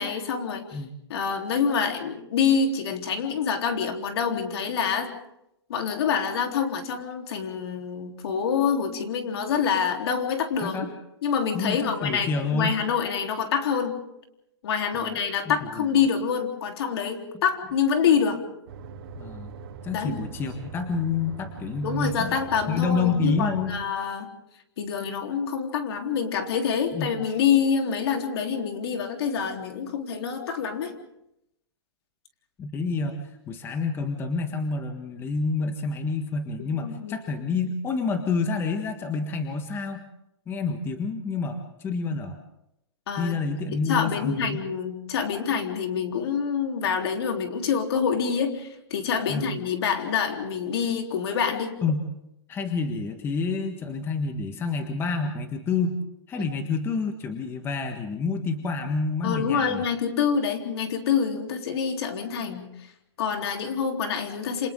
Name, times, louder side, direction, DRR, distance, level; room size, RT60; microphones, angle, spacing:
voice 1, 0.0-0.8 1.1-5.1 5.7-10.9 11.2-14.0 14.6-18.4 19.9-20.2 21.8-24.3 24.8-30.9 36.6-37.2 43.1-43.3 43.9-51.7 56.4-56.5 59.2-62.7 63.2-64.7, left 6 dB, 60° left, 3 dB, 3.7 m, -26 dB
voice 2, 11.5-12.7 15.0-15.2 15.4-15.9 19.2-19.5 19.8-22.4 22.7-23.7 26.9-27.1 32.6-33.2 33.5-40.0 40.5-42.4 43.2-44.6 49.3-49.5 51.8-52.0 52.5-56.0 56.3-59.8, left 4 dB, 15° left, 6 dB, 1.5 m, -28 dB
sound 1, 18.7-23.8, right 5 dB, 55° right, 3.2 m, -41 dB
28.0 x 27.5 x 3.8 m, 0.83 s
hypercardioid pair, 150°, 15 cm